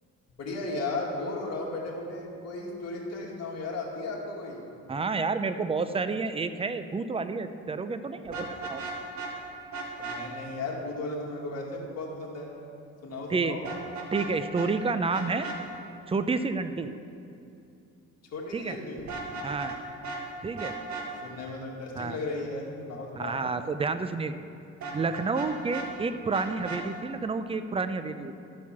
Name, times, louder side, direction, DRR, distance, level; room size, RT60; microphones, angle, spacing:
voice 1, 0.4-4.6 10.0-12.5 13.0-13.7 18.3-19.0 21.2-23.4, left 2 dB, 55° left, -2 dB, 2.2 m, -35 dB
voice 2, 4.9-8.8 13.3-13.6 14.1-15.5 16.1-16.9 18.5-18.8 19.4-19.7 20.4-20.8 22.0-22.2 23.2-24.4 24.9-28.4, right 4 dB, 20° right, 10 dB, 0.5 m, -30 dB
Vehicle horn car horn honking, 8.3-9.3 9.7-10.2 13.6-14.3 14.5-14.7 15.1-15.6 19.0-19.8 20.0-20.2 20.6-21.1 24.8-25.9 26.3-26.8, right 3 dB, 65° right, 1.7 m, -36 dB
12.5 x 4.6 x 7.3 m, 2.6 s
cardioid pair, 90°, 30 cm